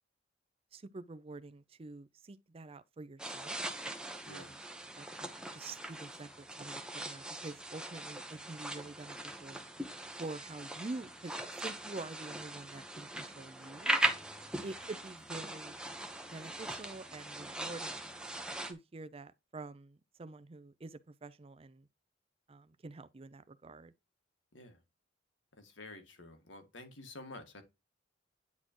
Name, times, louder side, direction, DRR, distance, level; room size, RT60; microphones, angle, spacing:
voice 1, 0.7-3.6 4.3-4.6 5.0-9.6 10.2-13.9 14.6-15.8 16.3-18.1 18.6-21.9 22.5-23.9, right 3 dB, 30° right, 0.5 m, -47 dB
sound 1, 3.2-18.7, right 1 dB, 5° right, 0.9 m, -40 dB
voice 2, 25.6-27.6, left 2 dB, 70° left, 1.9 m, -50 dB
9.6 x 4.3 x 3.0 m
head